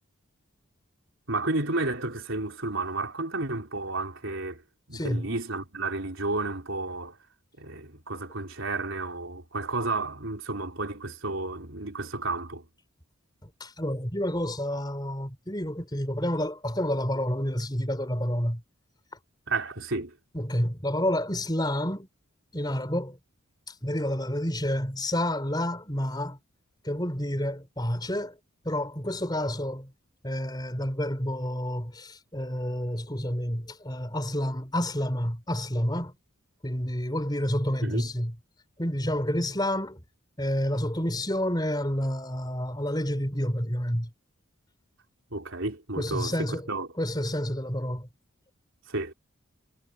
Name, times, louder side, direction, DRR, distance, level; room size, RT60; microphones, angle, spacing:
voice 1, 1.3-4.6 4.9-7.2 7.6-12.6 19.5-20.1 37.8-38.1 45.3-46.9 48.9-49.1, right 2 dB, 65° right, 4.3 m, -32 dB
voice 2, 4.9-5.3 13.4-18.6 20.3-22.1 22.5-23.2 23.7-26.4 26.8-28.4 28.6-29.9 30.2-36.1 36.6-38.3 38.8-40.0 40.4-44.1 46.0-46.7 47.0-48.1, equal, 20° left, 4.7 m, -29 dB
head